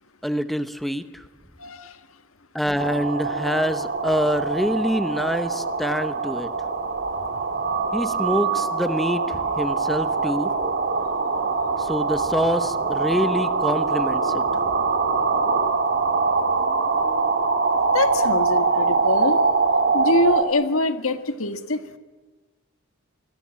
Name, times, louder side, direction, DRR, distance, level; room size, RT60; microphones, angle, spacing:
voice 1, 0.2-1.2 2.5-6.5 7.9-10.5 11.8-14.4, equal, ahead, 11 dB, 0.8 m, -26 dB
voice 2, 1.6-2.0 17.9-19.4 19.9-22.0, left 2 dB, 80° left, 9 dB, 1.7 m, -24 dB
sound 1, 2.8-20.4, right 4 dB, 50° right, 2.5 m, -23 dB
27.0 x 21.5 x 7.5 m, 1.2 s
head